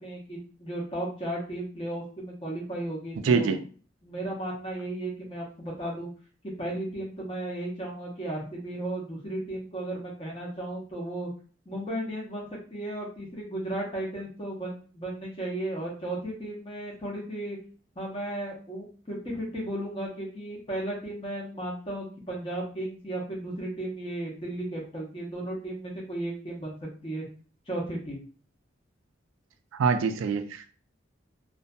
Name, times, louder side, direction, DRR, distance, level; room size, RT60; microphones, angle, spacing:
voice 1, 0.0-3.6 4.0-6.1 6.4-11.3 11.7-17.6 18.0-27.2 27.7-28.2, right 1 dB, 25° left, -4 dB, 0.8 m, -35 dB
voice 2, 3.2-3.6 29.8-30.7, right 5 dB, 90° right, 7 dB, 0.4 m, -24 dB
2.6 x 2.6 x 2.2 m, 0.40 s
head